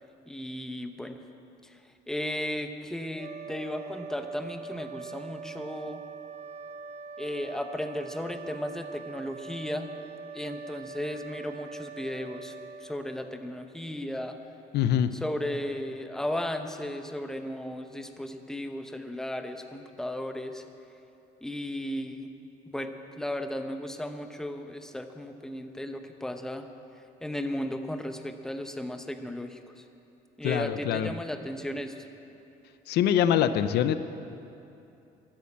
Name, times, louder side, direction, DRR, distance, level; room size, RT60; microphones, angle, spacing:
voice 1, 0.3-1.2 1.6-1.8 2.1-6.0 7.2-9.9 10.3-14.4 15.2-20.6 21.4-22.3 22.7-26.7 27.2-29.8 30.4-32.1, left 1 dB, 5° left, 6 dB, 0.8 m, -35 dB
sound 1, 3.1-13.7, right 5 dB, 40° right, 0.8 m, -43 dB
voice 2, 14.7-15.1 30.4-31.1 32.9-33.9, left 10 dB, 75° left, 12 dB, 0.6 m, -24 dB
13.0 x 8.9 x 8.5 m, 2.8 s
cardioid pair, 110°, 17 cm